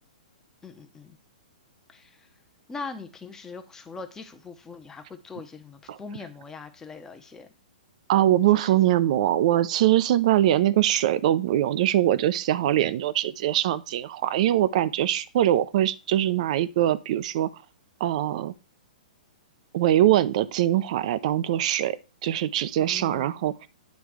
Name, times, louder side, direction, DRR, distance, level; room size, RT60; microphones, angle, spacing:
voice 1, 0.6-1.2 1.9-2.3 2.7-7.5 8.5-8.8 22.8-23.4, left 4 dB, 10° left, 0.9 m, -41 dB
voice 2, 8.1-17.5 18.0-18.5 19.7-22.0 22.2-23.7, right 12 dB, 55° right, 0.5 m, -22 dB
9.3 x 3.4 x 4.8 m
hypercardioid pair, 135°, 5 cm